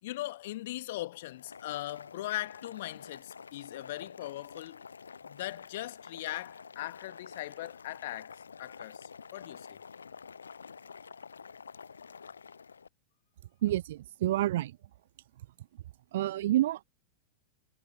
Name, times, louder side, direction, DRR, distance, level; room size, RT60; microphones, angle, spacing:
voice 1, 0.0-4.9 5.2-9.8, left 16 dB, 55° left, 2.2 m, -40 dB
Boiling, 1.3-12.9, left 6 dB, 75° left, 0.7 m, -49 dB
voice 2, 13.6-14.7 16.1-16.8, right 14 dB, 55° right, 0.3 m, -28 dB
figure-of-eight pair, 90°, 0 cm